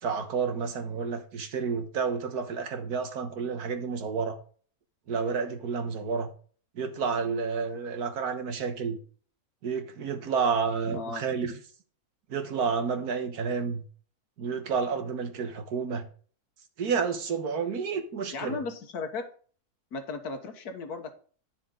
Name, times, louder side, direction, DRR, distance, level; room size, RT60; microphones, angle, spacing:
voice 1, 0.0-4.4 5.1-6.3 6.7-9.0 9.6-11.5 12.3-13.8 14.4-16.1 16.8-18.6, right 5 dB, 75° right, 1.7 m, -30 dB
voice 2, 18.3-19.3 19.9-21.1, left 4 dB, 80° left, 1.7 m, -35 dB
10.0 x 6.8 x 3.8 m
omnidirectional pair, 1.6 m